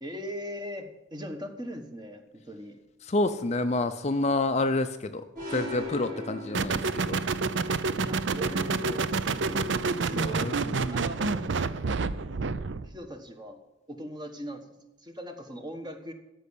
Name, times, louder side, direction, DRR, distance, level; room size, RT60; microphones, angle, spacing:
voice 1, 0.0-2.8 8.0-11.5 12.8-13.6 13.9-14.6 15.0-16.1, equal, 20° right, 6 dB, 1.2 m, -40 dB
voice 2, 3.1-5.2 5.5-6.8 7.1-7.2 10.1-10.5, left 2 dB, 35° left, 9 dB, 0.5 m, -28 dB
sound 1, 5.3-7.3, left 1 dB, 45° right, 4.8 m, -38 dB
sound 2, 6.5-12.9, right 4 dB, 60° right, 0.5 m, -28 dB
13.5 x 5.5 x 8.5 m, 1.0 s
head